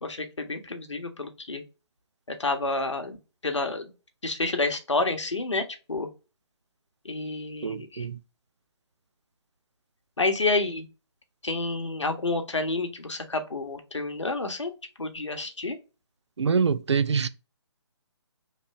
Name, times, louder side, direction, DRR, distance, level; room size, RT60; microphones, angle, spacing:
voice 1, 0.0-1.6 2.4-3.2 3.4-3.9 4.2-6.1 7.0-8.1 10.2-10.9 11.4-14.7 15.0-15.8, left 3 dB, 80° left, 1.1 m, -29 dB
voice 2, 7.6-8.2 16.4-17.3, right 5 dB, 70° right, 0.4 m, -25 dB
3.3 x 2.9 x 4.2 m
figure-of-eight pair, 145°, 15 cm